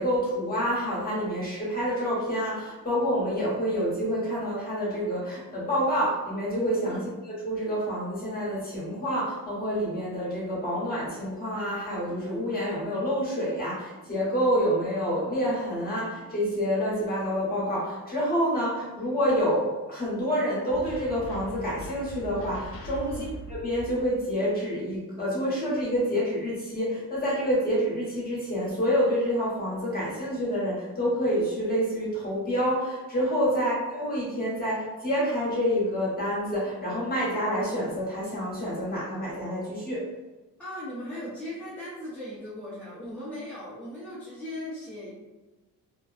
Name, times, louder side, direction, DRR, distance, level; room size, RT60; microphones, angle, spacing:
voice 1, 0.0-23.2 23.5-40.1, equal, 25° left, -7 dB, 1.1 m, -28 dB
sound 1, 20.7-24.3, right 1 dB, 40° left, 0.5 m, -41 dB
voice 2, 40.6-45.1, left 1 dB, 5° left, -11 dB, 0.7 m, -38 dB
2.7 x 2.2 x 2.4 m, 1.1 s
cardioid pair, 110°, 36 cm